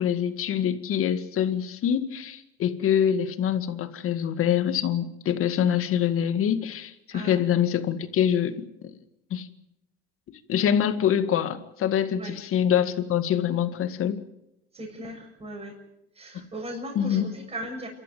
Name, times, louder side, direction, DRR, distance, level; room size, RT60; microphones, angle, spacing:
voice 1, 0.0-8.9 9.3-9.5 10.3-14.2 17.0-17.3, left 9 dB, 50° left, 10 dB, 2.0 m, -25 dB
voice 2, 14.7-15.7 16.1-17.9, right 1 dB, 20° right, -2 dB, 7.1 m, -37 dB
28.0 x 13.0 x 9.3 m, 0.86 s
supercardioid pair, 105°, 29 cm